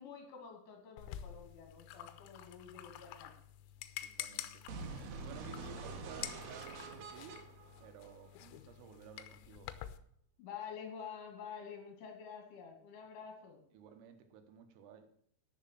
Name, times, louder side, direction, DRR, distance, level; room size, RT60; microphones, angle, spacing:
voice 1, 0.0-3.3 10.4-13.6, left 7 dB, 70° left, 2 dB, 4.7 m, -49 dB
sound 1, 1.0-10.0, left 12 dB, 85° left, 3.3 m, -49 dB
voice 2, 4.0-4.7 5.1-7.5 7.8-9.8 13.7-15.1, right 8 dB, 85° right, 7 dB, 3.9 m, -54 dB
sound 2, 4.7-8.7, right 3 dB, 65° right, 2.9 m, -46 dB
12.5 x 6.5 x 7.6 m, 0.63 s
omnidirectional pair, 5.8 m